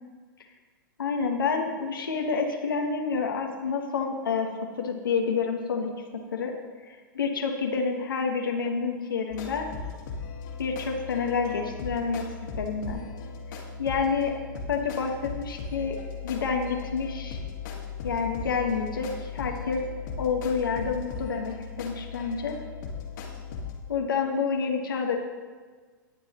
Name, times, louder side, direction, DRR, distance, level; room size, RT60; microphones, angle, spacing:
voice 1, 1.0-6.5 6.9-9.7 10.6-13.0 13.8-16.0 16.2-17.4 18.0-19.9 20.2-22.6 23.9-25.2, left 5 dB, 80° left, 2 dB, 1.5 m, -28 dB
sound 1, 9.3-23.8, left 6 dB, 65° left, 2.1 m, -38 dB
18.5 x 7.7 x 3.1 m, 1.5 s
hypercardioid pair, 110°, 11 cm